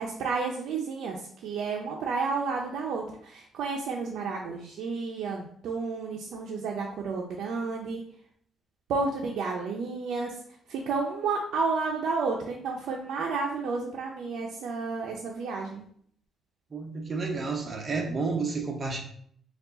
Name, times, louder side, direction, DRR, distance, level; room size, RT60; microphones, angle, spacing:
voice 1, 0.0-8.0 8.9-10.4 10.7-15.8, right 4 dB, 75° right, -1 dB, 0.5 m, -31 dB
voice 2, 16.7-19.0, right 4 dB, 25° right, 1 dB, 0.6 m, -31 dB
4.5 x 2.4 x 3.8 m, 0.63 s
cardioid pair, 165°, 0 cm